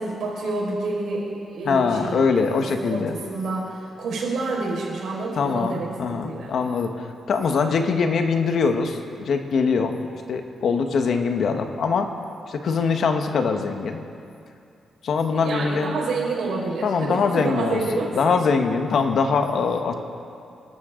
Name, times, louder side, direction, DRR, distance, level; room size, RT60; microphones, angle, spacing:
voice 1, 0.0-6.5 15.3-18.6, right 3 dB, 75° right, -3 dB, 5.2 m, -28 dB
voice 2, 1.6-3.1 5.4-9.0 9.2-12.1 12.5-14.0 15.0-15.9 16.8-17.8 18.2-19.9, left 5 dB, 60° left, 5 dB, 1.3 m, -23 dB
28.0 x 13.0 x 3.9 m, 2.5 s
wide cardioid pair, 150°, 0 cm